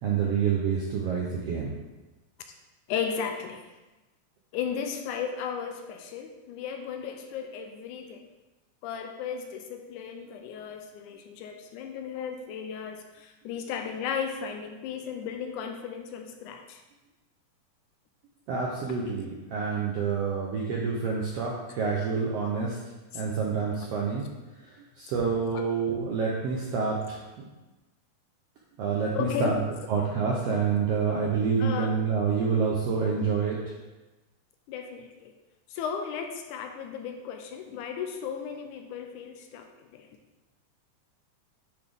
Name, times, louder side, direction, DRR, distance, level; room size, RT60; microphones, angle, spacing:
voice 1, 0.0-1.7 18.5-22.8 23.1-24.2 25.0-27.2 28.8-29.6 29.9-33.6, right 5 dB, 80° right, -3 dB, 1.4 m, -27 dB
voice 2, 2.9-3.7 4.5-8.3 8.8-16.8 23.1-23.2 25.5-25.7 29.1-29.6 31.6-31.9 34.7-35.3 35.7-40.1, left 7 dB, 80° left, 5 dB, 1.9 m, -35 dB
9.1 x 4.1 x 3.4 m, 1.1 s
omnidirectional pair, 3.7 m